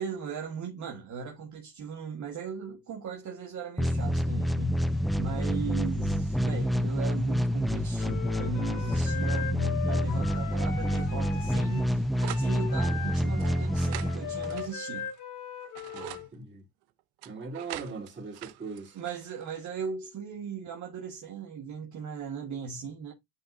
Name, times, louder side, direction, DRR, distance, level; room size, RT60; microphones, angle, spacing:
voice 1, 0.0-12.1 12.4-15.1 18.9-23.1, right 5 dB, 50° right, 1.5 m, -38 dB
sound 1, 3.8-14.7, equal, ahead, 0.3 m, -28 dB
Wind instrument woodwind instrument, 8.0-16.3, left 8 dB, 85° left, 3.0 m, -39 dB
sound 2, 12.2-12.5 13.4-15.2 15.6-16.3 17.2-19.7, right 16 dB, 85° right, 0.9 m, -43 dB
voice 2, 15.9-16.6 17.2-19.0, right 4 dB, 30° right, 3.3 m, -40 dB
9.8 x 3.6 x 2.7 m
cardioid pair, 120°, 38 cm